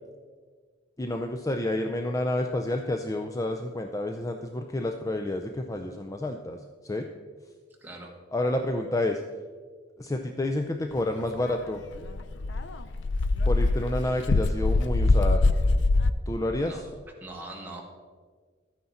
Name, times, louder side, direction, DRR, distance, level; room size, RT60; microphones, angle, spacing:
voice 1, 1.0-7.1 8.3-9.2 10.0-11.8 13.5-15.4 16.3-16.8, left 1 dB, 20° left, 5 dB, 0.5 m, -29 dB
voice 2, 7.8-8.1 16.7-16.8 17.2-17.8, right 2 dB, 10° right, -2 dB, 1.8 m, -41 dB
Dog, 11.5-11.6 11.9-16.1, left 2 dB, 80° left, 0.5 m, -23 dB
12.5 x 9.5 x 4.2 m, 1.5 s
head